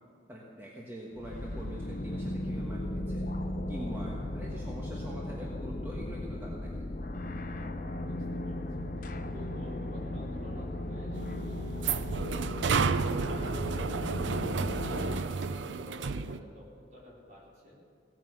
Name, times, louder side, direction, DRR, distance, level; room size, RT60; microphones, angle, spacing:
voice 1, 0.3-3.3 3.7-6.8, equal, 15° right, -4 dB, 1.4 m, -44 dB
sound 1, 1.1-15.2, left 1 dB, 45° left, 0.8 m, -36 dB
voice 2, 8.0-8.9 9.3-16.7 16.9-17.8, left 1 dB, 45° right, -6 dB, 4.4 m, -51 dB
sound 2, 11.1-16.4, right 5 dB, 85° right, 0.5 m, -31 dB
17.0 x 9.1 x 6.4 m, 2.3 s
head